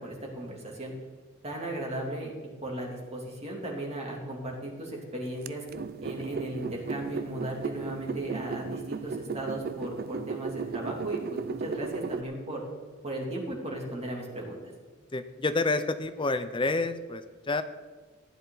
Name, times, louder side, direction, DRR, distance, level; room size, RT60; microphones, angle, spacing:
voice 1, 0.0-0.9 1.4-2.3 2.6-5.6 6.0-12.6 13.0-14.6, right 1 dB, 30° right, -1 dB, 2.9 m, -36 dB
sound 1, 5.5-12.2, right 4 dB, 45° right, 0.4 m, -36 dB
voice 2, 15.1-17.6, left 3 dB, 25° left, 11 dB, 0.6 m, -29 dB
15.5 x 10.5 x 4.0 m, 1.4 s
head